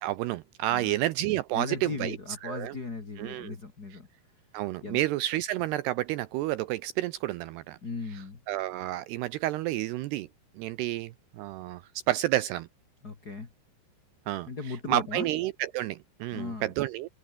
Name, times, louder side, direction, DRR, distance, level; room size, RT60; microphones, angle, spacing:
voice 1, 0.0-2.2 2.4-2.8 3.2-3.6 4.5-7.8 8.5-10.3 10.6-12.7 14.3-14.5 14.9-17.1, right 15 dB, 80° right, 2.5 m, -30 dB
voice 2, 1.5-4.1 4.8-5.0 7.8-8.4 13.0-13.5 14.5-15.3 16.3-16.7, left 3 dB, 30° left, 2.0 m, -37 dB
omnidirectional pair, 5.3 m